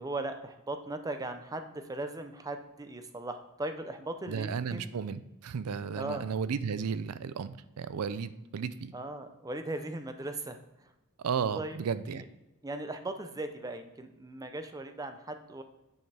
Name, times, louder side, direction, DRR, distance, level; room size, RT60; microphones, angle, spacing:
voice 1, 0.0-4.9 5.9-6.3 8.9-10.9 11.5-11.8 12.1-12.2 12.6-15.6, right 2 dB, 15° right, 8 dB, 0.5 m, -38 dB
voice 2, 4.3-8.9 11.2-12.2, right 6 dB, 90° right, 14 dB, 0.4 m, -34 dB
9.3 x 5.5 x 3.4 m, 0.97 s
head